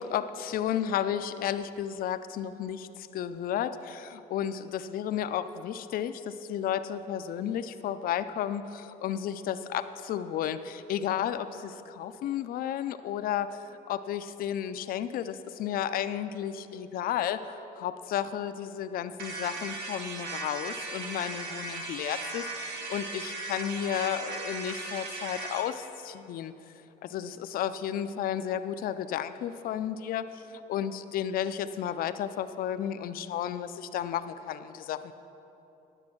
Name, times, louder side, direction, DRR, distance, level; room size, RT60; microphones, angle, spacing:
voice 1, 0.0-13.6 13.9-26.5 27.0-35.1, left 10 dB, 60° left, 11 dB, 0.5 m, -33 dB
sound 1, 19.2-25.7, right 3 dB, 80° right, 1.4 m, -37 dB
10.5 x 7.1 x 6.0 m, 3.0 s
cardioid pair, 110°, 17 cm